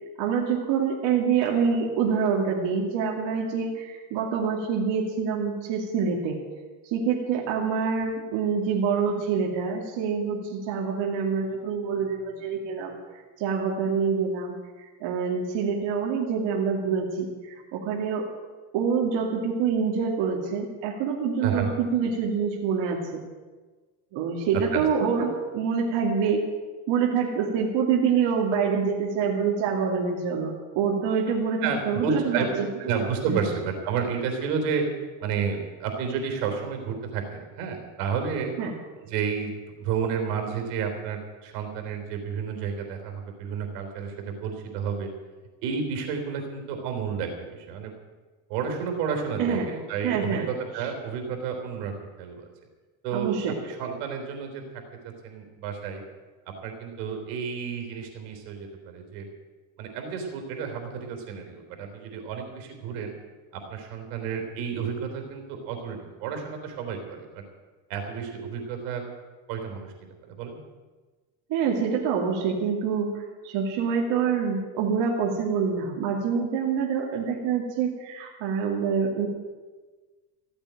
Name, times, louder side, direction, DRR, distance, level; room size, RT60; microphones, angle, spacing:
voice 1, 0.2-6.4 6.8-13.0 13.4-18.3 18.7-23.2 24.1-26.5 26.9-32.4 33.3-33.4 38.6-38.7 49.4-49.7 50.0-50.5 53.1-53.5 71.5-73.1 73.4-79.3, right 6 dB, 65° right, 0 dB, 2.6 m, -26 dB
voice 2, 21.4-21.7 24.5-24.8 31.6-32.5 32.8-34.9 35.2-38.5 39.0-45.1 45.6-47.9 48.5-51.9 52.2-52.5 53.0-56.0 56.5-59.3 59.8-63.1 63.5-67.4 67.9-69.0 69.5-69.9 70.2-70.6, right 6 dB, 85° right, 4 dB, 3.8 m, -31 dB
15.0 x 8.8 x 9.2 m, 1.3 s
cardioid pair, 115°, 46 cm